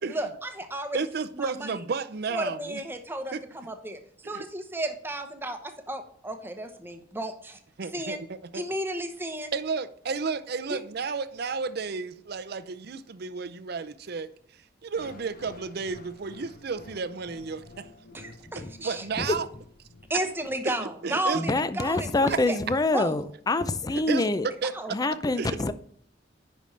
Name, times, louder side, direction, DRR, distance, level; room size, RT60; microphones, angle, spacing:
voice 1, 0.1-1.0 1.3-1.7 2.3-4.0 4.2-7.6 7.9-8.2 8.5-9.5 10.7-10.8 18.1-19.0 20.1-22.6 22.9-23.2 24.7-24.9, right 1 dB, 10° right, 0.9 m, -33 dB
voice 2, 0.9-2.8 3.3-3.4 4.2-4.4 7.8-8.6 9.5-14.3 14.8-17.9 18.3-18.4 18.8-19.5 20.6-20.8 21.0-21.6 23.9-24.3 24.6-24.7 25.4-25.7, right 4 dB, 60° right, 0.6 m, -32 dB
sound 1, 14.9-21.0, left 3 dB, 55° left, 0.9 m, -50 dB
voice 3, 21.3-24.5 24.9-25.7, left 2 dB, 20° left, 0.4 m, -26 dB
10.5 x 5.3 x 3.3 m
head